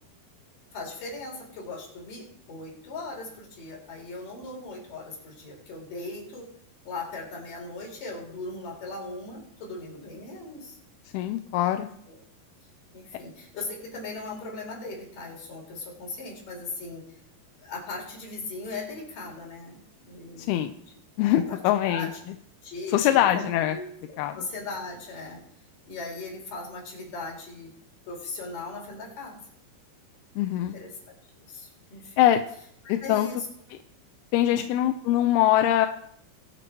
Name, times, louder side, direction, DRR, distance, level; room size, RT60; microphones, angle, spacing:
voice 1, 0.7-6.5 6.8-10.8 11.7-12.2 12.9-17.0 17.6-20.6 21.3-22.1 22.6-25.4 25.9-27.7 28.1-29.4 30.6-32.3 33.0-33.5 34.4-34.7, left 3 dB, 50° left, -1 dB, 5.6 m, -39 dB
voice 2, 11.1-11.9 20.4-20.7 21.2-22.1 22.9-23.8 24.2-24.4 30.4-30.8 32.2-32.4 32.9-33.3 34.3-35.9, left 12 dB, 80° left, 7 dB, 2.4 m, -23 dB
22.5 x 7.8 x 4.6 m, 0.68 s
omnidirectional pair, 4.9 m